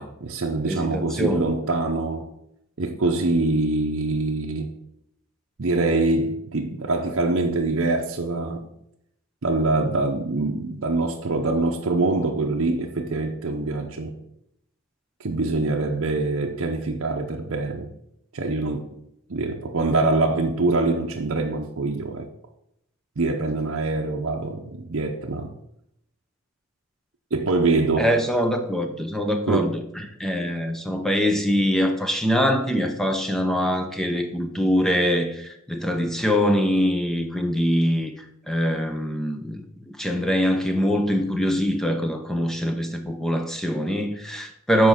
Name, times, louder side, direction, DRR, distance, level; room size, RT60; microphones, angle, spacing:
voice 1, 0.0-2.3 2.8-4.7 5.6-8.7 9.4-14.2 15.2-17.9 18.3-18.9 19.3-22.3 23.2-25.5 27.3-28.1 29.5-29.7, right 2 dB, 60° right, 0.7 m, -24 dB
voice 2, 0.6-1.4 28.0-38.1 38.5-44.9, equal, ahead, 0.6 m, -23 dB
7.4 x 4.6 x 5.7 m
head